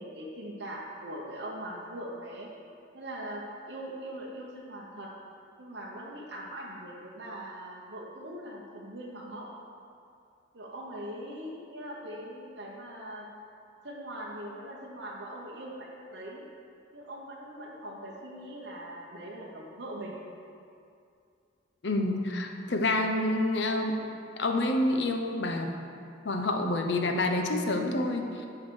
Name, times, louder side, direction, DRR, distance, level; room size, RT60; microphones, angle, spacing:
voice 1, 0.0-2.5 2.9-5.1 5.6-9.5 10.5-13.3 13.8-16.4 16.9-20.2, right 1 dB, 60° right, -4 dB, 1.0 m, -41 dB
voice 2, 21.8-24.0 24.4-25.7 26.2-28.5, left 2 dB, 65° left, 4 dB, 0.8 m, -28 dB
8.5 x 4.7 x 6.4 m, 2.4 s
head